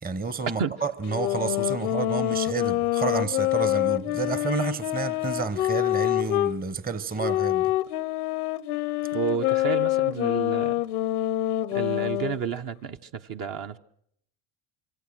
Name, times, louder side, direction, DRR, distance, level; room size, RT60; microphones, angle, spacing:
voice 1, 0.0-7.7, right 5 dB, 20° right, 1.0 m, -30 dB
sound 1, 1.1-6.6 7.2-12.4, left 15 dB, 90° left, 0.8 m, -26 dB
voice 2, 9.1-10.8 11.7-13.8, right 7 dB, 50° right, 1.2 m, -31 dB
25.5 x 24.0 x 6.2 m
hypercardioid pair, 80°, 43 cm